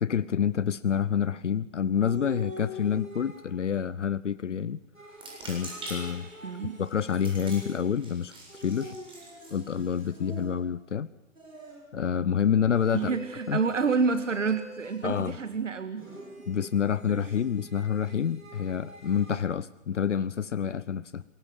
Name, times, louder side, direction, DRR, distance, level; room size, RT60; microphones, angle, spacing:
voice 1, 0.0-4.8 5.4-6.3 6.8-9.0 9.5-11.1 11.9-13.2 13.5-13.6 15.0-15.4 16.5-21.2, left 8 dB, 65° left, 16 dB, 1.0 m, -28 dB
sound 1, 2.0-3.7 4.9-8.0 8.5-10.8 11.4-12.1 12.7-15.5 16.0-19.5, equal, 85° right, 7.9 m, -45 dB
sound 2, 5.1-10.4, right 1 dB, 15° right, 7.8 m, -45 dB
voice 2, 6.4-6.8 12.9-16.0 17.1-17.2, right 5 dB, 70° right, 10 dB, 1.8 m, -28 dB
24.0 x 22.0 x 7.3 m, 0.76 s
figure-of-eight pair, 125°, 39 cm